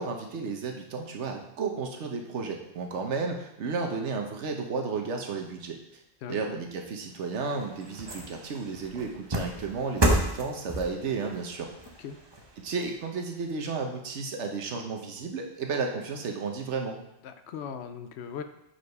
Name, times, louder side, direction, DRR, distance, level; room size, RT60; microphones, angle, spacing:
voice 1, 0.0-5.8 6.3-11.7 12.6-17.0, right 4 dB, 85° right, 3 dB, 1.2 m, -33 dB
voice 2, 6.2-6.6 12.0-12.2 17.2-18.4, left 7 dB, 75° left, 9 dB, 0.8 m, -39 dB
sound 1, 7.0-13.5 14.0-14.1, right 1 dB, 25° right, 0.7 m, -32 dB
5.0 x 4.4 x 5.3 m, 0.82 s
omnidirectional pair, 1.2 m